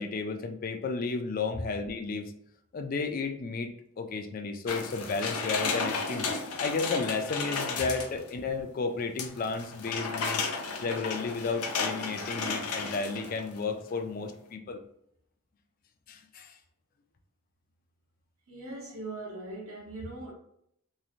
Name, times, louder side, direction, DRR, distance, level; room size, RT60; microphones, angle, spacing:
voice 1, 0.0-2.3 2.7-3.7 4.0-6.3 6.6-10.4 10.8-14.8 16.1-16.6, left 4 dB, 40° left, 0.3 m, -33 dB
sound 1, 4.7-8.3 9.2-13.6 13.9-14.0, left 4 dB, 90° left, 0.5 m, -33 dB
voice 2, 18.5-20.3, right 2 dB, 75° right, 0.8 m, -40 dB
3.1 x 2.5 x 2.4 m
head